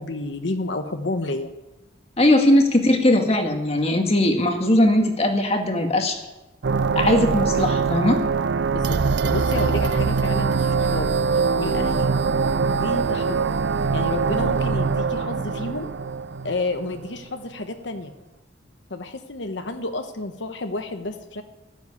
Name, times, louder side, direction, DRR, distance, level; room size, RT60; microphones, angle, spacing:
voice 1, 0.0-1.5 8.7-12.2 12.7-13.6 13.9-15.9 16.4-18.1 18.9-21.4, left 2 dB, 70° left, 7 dB, 1.1 m, -30 dB
voice 2, 2.2-6.2 7.0-8.2, left 1 dB, 30° left, 4 dB, 1.8 m, -19 dB
sound 1, 6.6-17.2, right 5 dB, 65° right, 0.5 m, -23 dB
14.5 x 8.1 x 9.7 m, 1.0 s
head